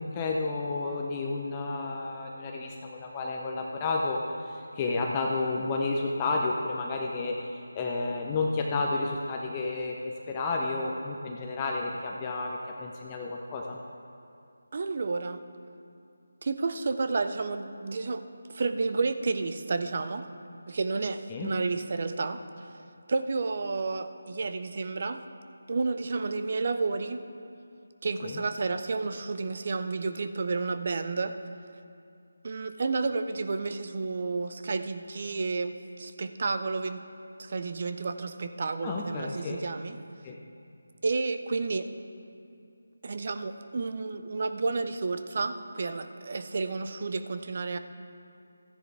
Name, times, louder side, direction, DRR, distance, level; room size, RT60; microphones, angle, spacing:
voice 1, 0.0-13.8 21.3-21.5 28.2-28.4 38.8-39.6 40.2-40.4, left 3 dB, 20° left, 0 dB, 0.6 m, -31 dB
voice 2, 14.7-15.4 16.4-18.2 18.5-20.3 20.7-22.8 23.1-25.2 25.7-27.2 28.0-31.3 32.4-37.0 37.4-40.0 41.0-41.9 43.0-47.8, right 3 dB, 45° right, 9 dB, 0.6 m, -31 dB
14.5 x 10.0 x 3.4 m, 2.5 s
figure-of-eight pair, 165°, 0 cm